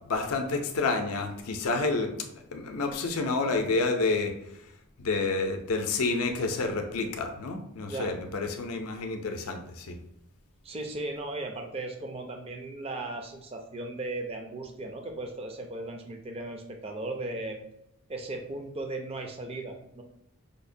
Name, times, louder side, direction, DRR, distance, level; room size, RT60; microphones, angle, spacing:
voice 1, 0.1-2.1 2.5-4.3 5.0-10.0, left 3 dB, 80° left, 5 dB, 0.5 m, -29 dB
voice 2, 10.6-17.6 18.1-20.0, right 2 dB, 25° right, 4 dB, 0.4 m, -36 dB
5.1 x 2.1 x 2.6 m, 0.80 s
head